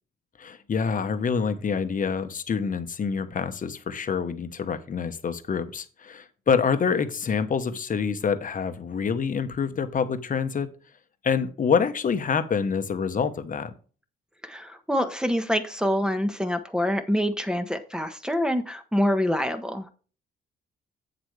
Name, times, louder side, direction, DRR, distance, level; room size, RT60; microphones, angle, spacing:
voice 1, 0.4-10.7 11.2-13.7, left 6 dB, 40° left, 10 dB, 1.2 m, -26 dB
voice 2, 14.4-19.9, equal, 5° right, 8 dB, 1.2 m, -26 dB
8.1 x 7.9 x 3.3 m, 0.38 s
cardioid pair, 90°, 20 cm